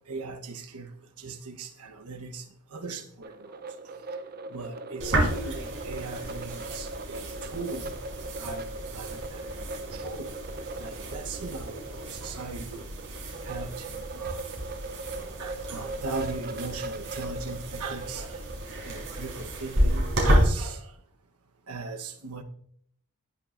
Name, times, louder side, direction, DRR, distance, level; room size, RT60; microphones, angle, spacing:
voice 1, 0.1-2.4 2.7-3.6 4.5-8.0 8.4-10.3 10.8-12.9 13.4-14.4 15.4-18.4 18.8-20.9 21.7-22.4, right 4 dB, 85° right, 1.1 m, -39 dB
sound 1, 3.2-19.9, right 2 dB, 45° right, 0.7 m, -40 dB
sound 2, 5.0-20.4, equal, 60° right, 4.9 m, -31 dB
19.0 x 7.3 x 2.6 m
head